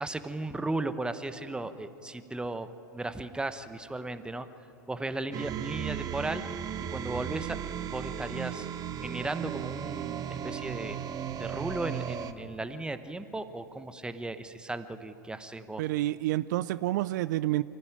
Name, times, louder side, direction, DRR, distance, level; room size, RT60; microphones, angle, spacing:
voice 1, 0.0-2.7 2.9-4.5 4.9-6.4 6.9-7.6 7.9-8.7 9.0-11.0 11.4-15.8, right 2 dB, 10° right, 11 dB, 1.1 m, -36 dB
sound 1, 5.3-12.3, right 9 dB, 40° right, 1.1 m, -36 dB
voice 2, 15.8-17.6, right 16 dB, 65° right, 17 dB, 0.4 m, -28 dB
25.0 x 14.5 x 9.0 m, 2.9 s
hypercardioid pair, 85°, 10 cm